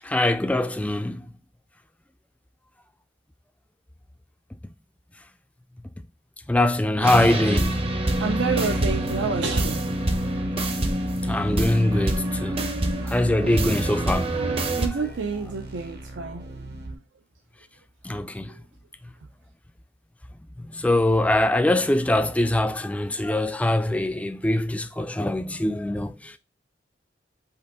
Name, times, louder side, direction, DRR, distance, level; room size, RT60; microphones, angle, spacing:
voice 1, 0.0-1.3 6.5-7.8 11.3-12.7 13.1-14.5 18.0-18.6 20.7-26.3, left 1 dB, 5° left, 0.3 m, -23 dB
sound 1, 7.0-14.9, right 1 dB, 30° right, 0.6 m, -26 dB
sound 2, 7.3-17.0, right 1 dB, 60° right, 0.9 m, -40 dB
voice 2, 8.2-9.8 12.9-13.0 13.4-13.8 14.8-16.5, right 5 dB, 80° right, 0.5 m, -29 dB
5.4 x 2.6 x 3.8 m
head